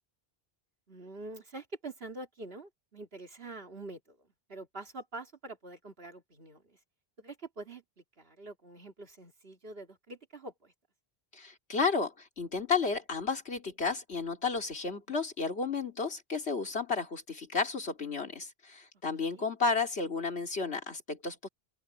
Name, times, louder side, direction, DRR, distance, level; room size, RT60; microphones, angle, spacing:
voice 1, 0.9-6.8 7.2-10.7 19.2-19.5, right 2 dB, 65° right, 2.7 m, -46 dB
voice 2, 11.3-21.5, left 4 dB, 85° left, 3.0 m, -32 dB
open air
omnidirectional pair, 1.1 m